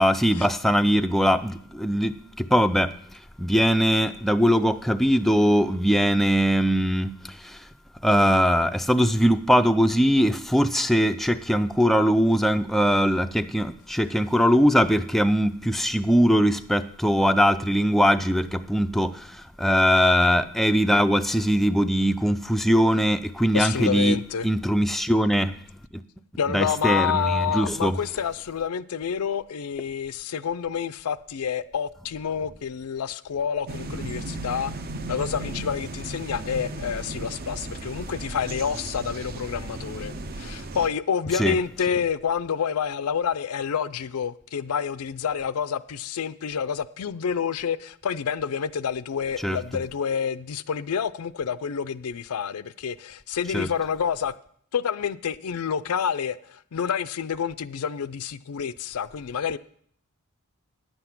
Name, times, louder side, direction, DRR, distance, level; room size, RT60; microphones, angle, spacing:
voice 1, 0.0-3.0 3.4-7.6 8.0-24.2 24.4-25.6 26.5-28.0 41.3-41.6 49.4-49.6 53.5-53.7, equal, ahead, 0.3 m, -21 dB
voice 2, 23.5-24.5 26.4-34.7 35.1-54.3 54.7-59.6, left 7 dB, 90° left, 0.5 m, -28 dB
sound 1, 33.7-40.9, right 2 dB, 45° right, 0.7 m, -35 dB
10.0 x 8.0 x 5.8 m
head